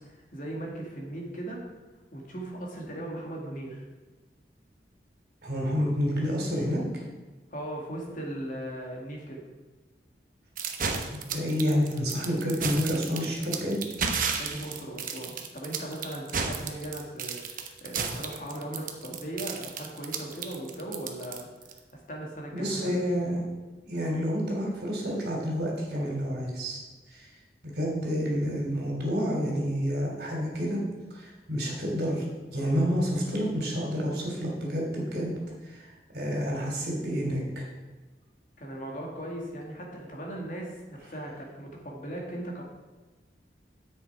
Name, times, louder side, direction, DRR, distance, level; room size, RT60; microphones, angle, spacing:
voice 1, 0.3-1.6 2.1-3.8 7.5-9.4 14.4-21.5 21.9-23.0 38.6-42.6, right 1 dB, 45° left, -1 dB, 2.2 m, -38 dB
voice 2, 5.4-6.8 11.1-13.8 22.5-23.4 23.8-26.8 27.1-27.3 27.6-30.8 31.1-32.2 32.5-35.9 36.1-37.7, equal, 65° right, -1 dB, 3.2 m, -29 dB
sound 1, 10.6-21.8, right 5 dB, 50° right, 0.9 m, -32 dB
9.9 x 7.8 x 4.7 m, 1.3 s
head